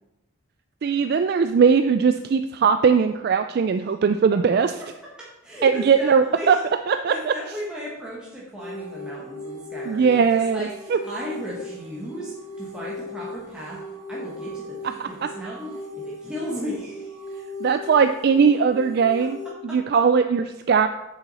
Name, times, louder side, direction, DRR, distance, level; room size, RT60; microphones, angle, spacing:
voice 1, 0.8-4.7 5.6-6.6 6.9-7.3 9.9-11.0 15.0-15.1 17.6-19.4 19.6-20.9, right 6 dB, 50° right, 8 dB, 0.3 m, -19 dB
voice 2, 5.4-6.6 7.1-13.8 14.1-17.1, equal, 5° right, -7 dB, 1.4 m, -35 dB
sound 1, 8.6-19.5, left 1 dB, 15° left, 1.9 m, -37 dB
8.1 x 7.1 x 4.2 m, 0.99 s
head